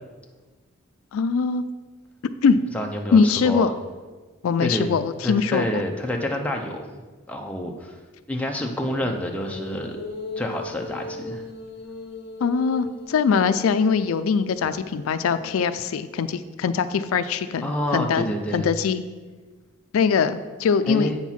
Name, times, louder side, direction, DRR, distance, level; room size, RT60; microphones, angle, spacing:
voice 1, 1.1-1.6 2.4-2.6 3.1-3.7 4.4-5.8 12.4-19.0 19.9-21.1, left 5 dB, 75° left, 12 dB, 0.3 m, -22 dB
voice 2, 2.7-3.7 4.6-4.9 5.2-7.0 7.3-8.0 8.3-10.0 10.4-11.4 17.6-18.7 20.9-21.2, equal, 5° left, 1 dB, 0.6 m, -28 dB
sound 1, 9.0-16.4, left 2 dB, 50° left, 1.0 m, -38 dB
8.0 x 4.5 x 5.7 m, 1.3 s
head